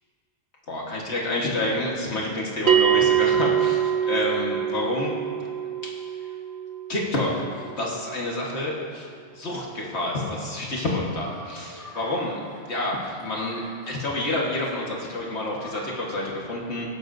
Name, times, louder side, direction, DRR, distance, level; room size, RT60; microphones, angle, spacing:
voice 1, 0.7-5.5 5.8-6.0 6.9-7.4 7.8-9.1 9.3-16.9, left 1 dB, 75° left, -3 dB, 1.8 m, -28 dB
Bell, 2.7-7.7, right 9 dB, 70° right, 1.0 m, -24 dB
sound 1, 11.2-16.2, equal, 20° right, 2.0 m, -45 dB
19.0 x 11.0 x 2.7 m, 2.3 s
omnidirectional pair, 1.1 m